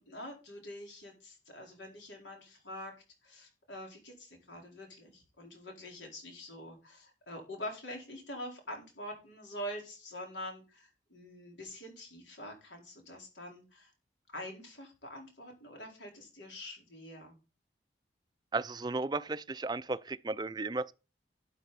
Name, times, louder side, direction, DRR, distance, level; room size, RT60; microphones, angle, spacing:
voice 1, 0.0-2.9 3.2-13.9 14.3-17.4, left 1 dB, 85° left, 4.5 m, -45 dB
voice 2, 18.5-20.9, right 3 dB, 20° right, 0.4 m, -34 dB
12.5 x 7.5 x 4.2 m
head